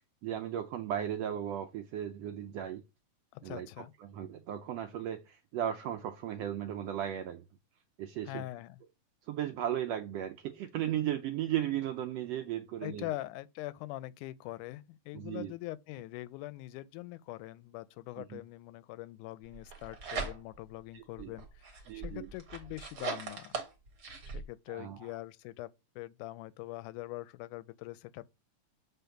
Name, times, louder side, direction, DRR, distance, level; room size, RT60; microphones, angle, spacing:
voice 1, 0.2-2.8 3.4-7.4 8.0-8.4 9.3-13.1 15.1-15.5 18.3-18.4 20.9-21.3 21.9-22.3 24.7-25.1, right 11 dB, 80° right, 1.5 m, -36 dB
voice 2, 3.3-3.9 8.3-8.8 12.8-23.6 24.3-25.7 26.0-28.3, left 17 dB, 85° left, 2.0 m, -43 dB
sound 1, 19.5-20.7 21.2-24.4, right 4 dB, 45° right, 1.4 m, -40 dB
7.1 x 3.9 x 5.8 m
omnidirectional pair, 3.5 m